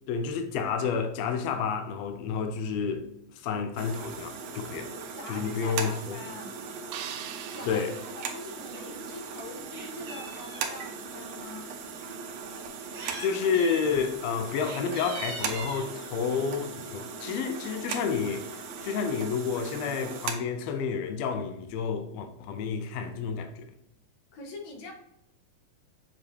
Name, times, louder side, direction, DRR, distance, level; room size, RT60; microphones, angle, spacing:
voice 1, 0.1-3.1 3.3-4.9 5.3-6.2 7.7-8.0 13.2-23.7, left 6 dB, 90° left, 1.4 m, -30 dB
sound 1, 3.8-20.3, right 6 dB, 75° right, 1.6 m, -39 dB
voice 2, 5.1-6.5 7.5-11.7 24.3-24.9, left 3 dB, 65° left, 2.5 m, -43 dB
sound 2, 6.9-9.2, right 9 dB, 90° right, 2.4 m, -43 dB
Meow, 8.6-8.8 9.2-10.9 11.7-11.8 12.6-13.3 13.5-14.0 14.5-15.9 16.9-17.2 17.6-17.7 17.9-18.0 18.3-18.9, right 3 dB, 50° right, 2.5 m, -42 dB
7.3 x 4.9 x 2.8 m
omnidirectional pair, 4.0 m